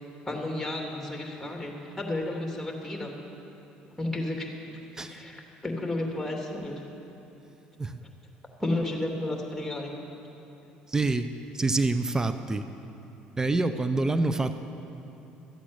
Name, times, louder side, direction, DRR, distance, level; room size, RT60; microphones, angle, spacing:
voice 1, 0.3-1.7 2.0-3.1 4.0-4.5 5.1-6.8 8.6-9.9, left 1 dB, 5° left, 1 dB, 2.7 m, -32 dB
voice 2, 10.9-12.7 13.4-14.5, right 2 dB, 15° right, 10 dB, 0.7 m, -26 dB
13.5 x 8.3 x 8.1 m, 3.0 s
supercardioid pair, 75°, 4 cm